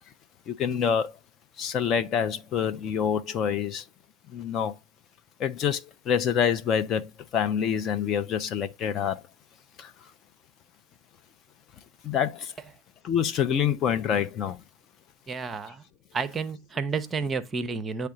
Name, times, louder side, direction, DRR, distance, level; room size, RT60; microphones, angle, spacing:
voice 1, 0.5-1.2 1.6-3.8 4.3-4.8 5.4-9.2 9.8-9.9 12.0-12.5 13.0-14.6, left 8 dB, 30° left, 0.5 m, -26 dB
voice 2, 15.3-15.8 16.1-18.1, right 4 dB, 15° right, 0.7 m, -30 dB
9.4 x 3.4 x 3.7 m
figure-of-eight pair, 90°, 0 cm